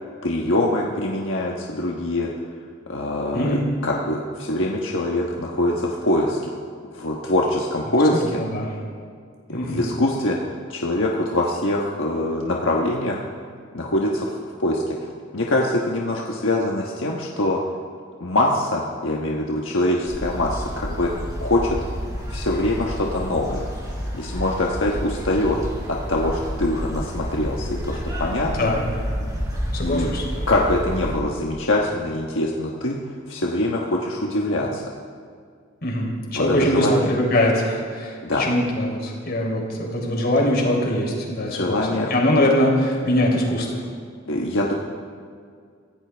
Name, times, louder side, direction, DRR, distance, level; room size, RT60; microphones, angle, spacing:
voice 1, 0.2-2.3 2.9-6.5 6.9-8.4 9.5-13.2 13.7-17.6 18.2-21.8 22.3-23.7 24.1-25.6 25.9-28.7 29.8-30.1 30.5-34.8 36.3-37.1 38.2-38.5 41.5-42.1 44.3-44.7, left 1 dB, 70° left, -2 dB, 1.4 m, -24 dB
voice 2, 3.3-3.7 8.1-8.8 9.5-9.8 28.6-28.9 29.7-30.5 35.8-43.8, left 1 dB, 50° left, -1 dB, 3.8 m, -22 dB
sound 1, 20.1-31.2, equal, 20° right, 5.7 m, -30 dB
25.0 x 16.0 x 3.5 m, 2.1 s
head